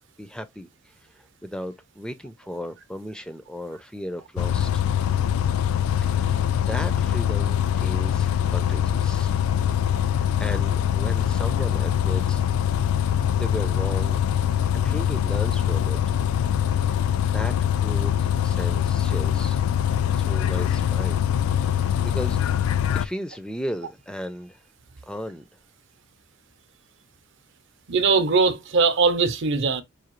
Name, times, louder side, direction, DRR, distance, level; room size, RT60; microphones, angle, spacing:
voice 1, 0.2-4.8 6.0-9.4 10.2-12.5 13.3-14.2 14.8-16.0 17.1-18.1 18.4-19.6 20.1-21.2 21.6-24.6 25.0-25.5, equal, 5° left, 0.3 m, -36 dB
Bus, 4.4-23.1, left 9 dB, 85° left, 0.3 m, -23 dB
voice 2, 27.9-29.8, right 4 dB, 60° right, 0.6 m, -20 dB
4.9 x 2.7 x 2.9 m
head